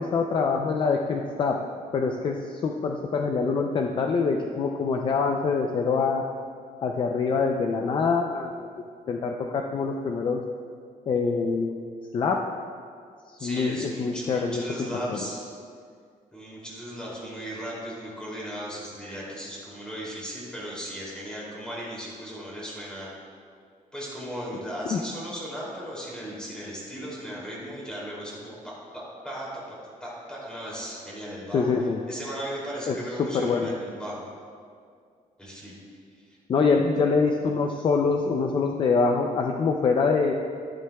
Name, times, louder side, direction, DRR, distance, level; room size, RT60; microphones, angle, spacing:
voice 1, 0.0-1.6 1.9-6.2 6.8-8.5 9.1-10.4 11.1-11.7 12.1-12.4 13.3-14.6 15.1-15.2 24.9-25.0 31.5-32.0 32.9-33.7 36.5-40.3, left 4 dB, 35° left, 3 dB, 0.4 m, -25 dB
voice 2, 13.4-15.4 16.3-23.1 23.9-31.7 32.1-34.2 35.4-35.8 36.1-36.4, equal, 5° left, -6 dB, 2.6 m, -37 dB
12.5 x 11.0 x 2.3 m, 2.2 s
cardioid pair, 170°, 14 cm